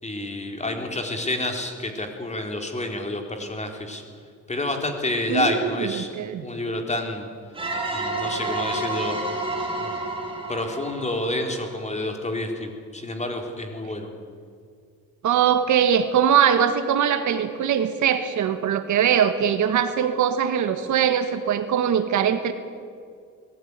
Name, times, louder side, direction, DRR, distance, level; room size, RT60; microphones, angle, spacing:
voice 1, 0.0-4.0 4.5-6.2 6.4-7.3 7.9-9.2 9.8-10.0 10.5-14.1, left 1 dB, 25° left, 3 dB, 3.9 m, -29 dB
voice 2, 5.3-6.5 15.2-22.5, right 8 dB, 70° right, 9 dB, 1.9 m, -21 dB
sound 1, 7.5-12.1, right 2 dB, 20° right, 4.8 m, -30 dB
21.0 x 15.0 x 9.8 m, 2.2 s
cardioid pair, 90°, 30 cm